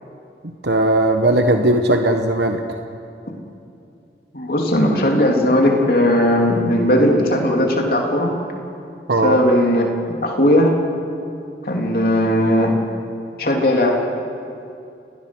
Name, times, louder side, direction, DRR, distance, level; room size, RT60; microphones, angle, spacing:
voice 1, 0.6-2.6 9.1-9.4, right 1 dB, 80° right, 4 dB, 1.3 m, -17 dB
voice 2, 4.3-8.3 9.2-10.7 11.6-12.8 13.4-14.0, left 1 dB, 55° left, 0 dB, 3.6 m, -17 dB
29.0 x 20.5 x 6.4 m, 2.6 s
head